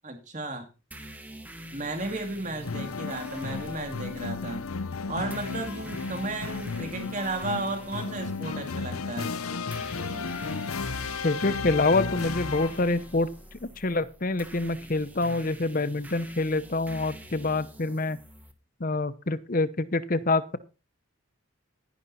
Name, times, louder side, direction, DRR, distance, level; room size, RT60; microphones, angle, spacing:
voice 1, 0.0-0.7 1.7-4.6 5.1-9.3, right 2 dB, 35° right, 5 dB, 2.4 m, -34 dB
sound 1, 0.9-18.5, right 1 dB, 10° right, 1.3 m, -46 dB
sound 2, 2.6-13.0, left 4 dB, 85° left, 0.8 m, -34 dB
voice 2, 11.2-13.3 13.6-18.2 18.8-20.6, left 2 dB, 40° left, 15 dB, 0.8 m, -26 dB
11.0 x 11.0 x 4.2 m, 0.32 s
head